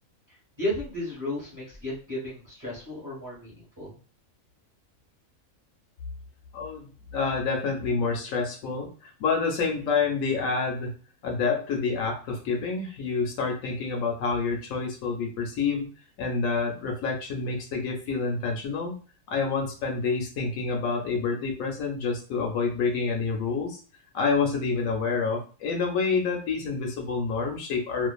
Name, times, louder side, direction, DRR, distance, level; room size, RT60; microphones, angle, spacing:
voice 1, 0.6-4.0, left 1 dB, 15° right, -7 dB, 1.0 m, -33 dB
voice 2, 6.5-6.9 7.1-10.9 11.2-15.9 16.2-18.9 19.3-23.8 24.1-28.1, left 4 dB, 75° left, 1 dB, 1.0 m, -28 dB
2.5 x 2.4 x 2.3 m, 0.37 s
omnidirectional pair, 1.5 m